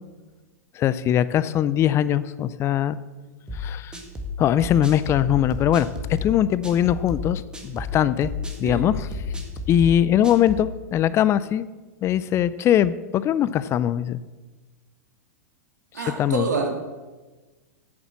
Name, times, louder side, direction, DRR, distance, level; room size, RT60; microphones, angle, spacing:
voice 1, 0.8-3.0 3.5-4.0 4.4-5.9 6.2-8.3 8.6-9.1 9.7-11.7 12.0-14.2 16.2-16.5, left 10 dB, 30° left, 16 dB, 0.4 m, -21 dB
sound 1, 3.5-10.7, left 4 dB, 10° right, 1.7 m, -32 dB
voice 2, 15.9-16.7, right 5 dB, 85° right, 3 dB, 2.2 m, -27 dB
8.7 x 8.1 x 7.4 m, 1.2 s
hypercardioid pair, 110°, 9 cm